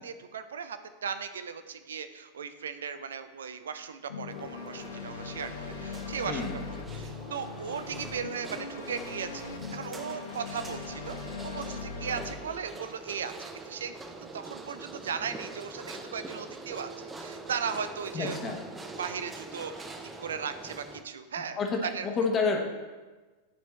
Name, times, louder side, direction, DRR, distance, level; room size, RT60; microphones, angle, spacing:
voice 1, 0.0-11.2 11.4-13.9 14.2-18.6 19.0-19.9 20.2-22.1, right 6 dB, 65° right, 10 dB, 0.4 m, -37 dB
sound 1, 4.1-12.3, left 5 dB, 65° left, 0.7 m, -40 dB
sound 2, 4.3-21.0, right 3 dB, 15° right, 0.6 m, -44 dB
voice 2, 6.2-6.6 18.1-18.6 21.6-22.6, left 4 dB, 25° left, 3 dB, 1.1 m, -29 dB
10.0 x 4.5 x 3.2 m, 1.3 s
figure-of-eight pair, 90°, 0 cm